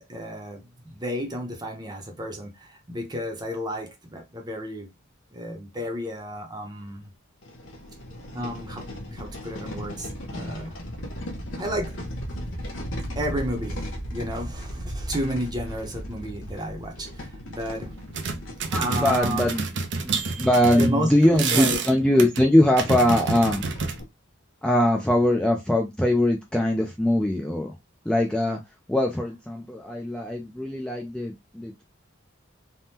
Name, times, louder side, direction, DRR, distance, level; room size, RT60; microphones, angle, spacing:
voice 1, 0.0-4.9 5.3-7.1 8.3-10.8 11.5-12.0 13.2-17.9 18.8-19.6 20.7-21.8, equal, 20° right, 0.7 m, -32 dB
sound 1, 6.9-7.0 7.4-20.8 21.5-21.6 21.8-21.9 22.5-24.0, equal, 75° left, 0.8 m, -36 dB
sound 2, 17.6-17.7 18.0-24.0, right 4 dB, 65° right, 0.5 m, -29 dB
voice 2, 18.7-19.7 20.0-23.6 24.6-27.7 28.1-28.6 28.9-31.8, left 1 dB, 5° left, 0.4 m, -22 dB
3.5 x 2.1 x 2.7 m
head